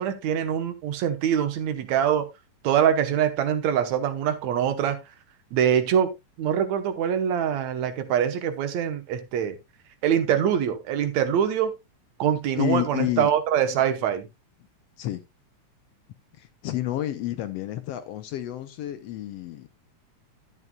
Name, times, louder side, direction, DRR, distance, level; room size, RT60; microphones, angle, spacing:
voice 1, 0.0-2.3 2.6-5.0 5.5-6.1 6.4-9.6 10.0-11.7 12.2-14.3, right 9 dB, 75° right, 2.3 m, -24 dB
voice 2, 12.6-13.3 15.0-15.2 16.4-19.7, left 14 dB, 75° left, 1.6 m, -29 dB
11.0 x 9.9 x 2.3 m
omnidirectional pair, 3.3 m